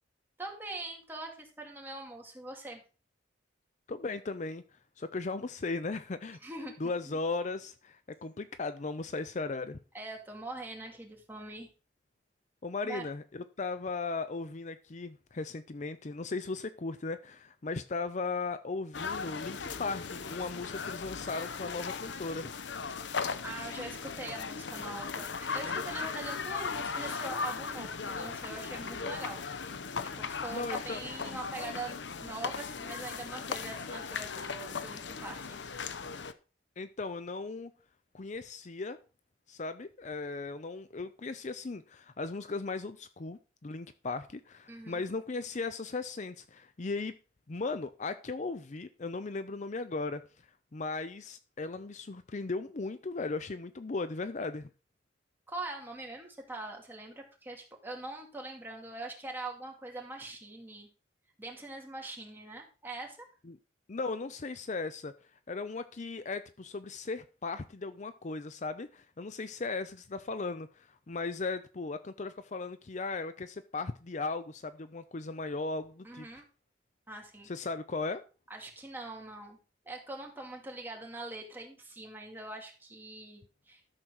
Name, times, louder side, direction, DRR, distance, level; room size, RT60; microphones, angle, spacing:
voice 1, 0.4-2.8 6.4-6.7 7.1-7.2 9.9-11.7 12.8-13.1 23.4-29.4 30.0-35.6 44.7-45.0 55.5-60.9 61.4-63.3 76.0-76.4 77.1-77.5 78.5-79.6 79.8-83.8, right 2 dB, 10° right, 2.5 m, -43 dB
voice 2, 3.9-4.6 5.0-6.4 6.8-9.8 12.6-22.5 30.5-31.0 36.8-37.7 38.1-39.0 39.5-47.1 47.5-50.2 50.7-54.7 63.4-63.6 63.9-65.1 65.5-76.3 77.4-78.2, left 3 dB, 40° left, 0.5 m, -37 dB
sound 1, 18.9-36.3, left 5 dB, 80° left, 0.8 m, -38 dB
12.5 x 4.4 x 6.4 m
head